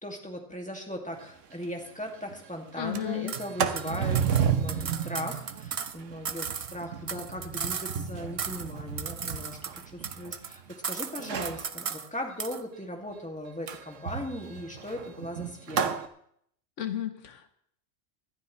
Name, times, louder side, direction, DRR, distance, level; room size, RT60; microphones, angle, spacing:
voice 1, 0.0-9.6 9.9-15.9, left 1 dB, 5° left, 1 dB, 2.1 m, -38 dB
Sliding door, 1.2-1.3 1.6-1.7 2.1-2.4 2.7-10.7 11.2-11.7 13.7-16.1, right 7 dB, 90° right, 1.2 m, -32 dB
voice 2, 2.8-3.4 16.8-17.5, left 11 dB, 75° left, 9 dB, 1.2 m, -33 dB
sound 1, 3.3-3.5 3.8-6.0 6.2-8.1 8.4-8.7 9.0-10.6 10.8-12.1 12.4-12.6, right 6 dB, 45° right, 0.4 m, -36 dB
19.5 x 12.0 x 3.2 m, 0.67 s
omnidirectional pair, 1.3 m